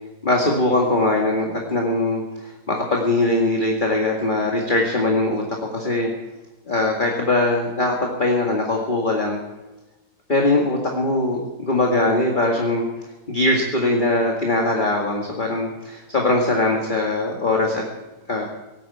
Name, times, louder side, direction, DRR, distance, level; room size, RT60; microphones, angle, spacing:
voice 1, 0.2-5.4 5.7-6.1 6.7-9.4 10.3-12.9 13.3-17.8 18.3-18.4, left 2 dB, 25° left, 0 dB, 2.1 m, -21 dB
18.0 x 9.3 x 8.5 m, 1.1 s
omnidirectional pair, 2.3 m